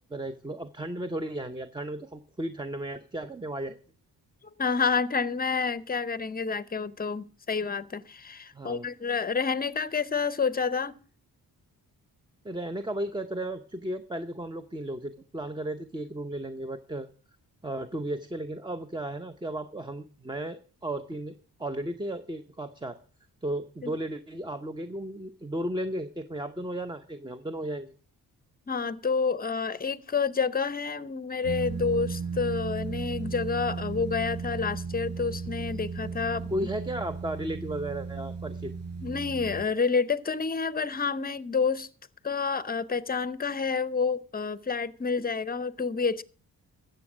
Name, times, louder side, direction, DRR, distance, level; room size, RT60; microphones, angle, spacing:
voice 1, 0.1-3.8 8.5-8.9 12.4-17.1 17.6-21.3 21.6-23.0 23.4-27.9 36.5-38.7, right 1 dB, 10° right, 0.8 m, -34 dB
voice 2, 4.6-10.9 23.8-23.9 28.7-36.5 39.0-41.9 42.2-46.2, left 5 dB, 25° left, 0.7 m, -29 dB
sound 1, 31.4-39.6, right 5 dB, 45° right, 4.2 m, -35 dB
13.5 x 7.7 x 6.2 m
cardioid pair, 85°, 37 cm